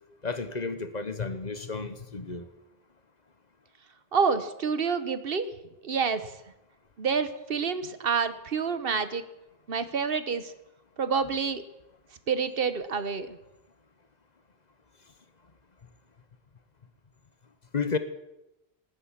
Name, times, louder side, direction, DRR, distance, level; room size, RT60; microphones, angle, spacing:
voice 1, 0.2-2.5 17.7-18.0, left 4 dB, 45° left, 10 dB, 1.1 m, -32 dB
voice 2, 4.1-5.5 5.8-6.3 7.0-9.2 9.7-10.5 11.0-11.6 12.3-13.4, right 5 dB, 65° right, 12 dB, 1.2 m, -28 dB
18.5 x 10.0 x 7.3 m, 0.90 s
omnidirectional pair, 1.1 m